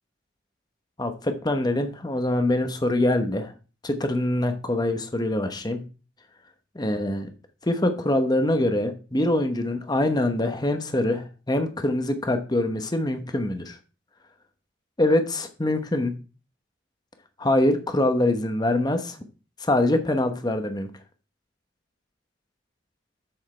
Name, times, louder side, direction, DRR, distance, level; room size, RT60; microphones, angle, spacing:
voice 1, 1.0-3.5 3.8-5.8 6.7-7.3 7.6-13.8 15.0-16.1 17.4-19.2 19.6-20.9, left 1 dB, 20° left, 7 dB, 1.0 m, -24 dB
7.9 x 6.5 x 4.5 m, 0.34 s
head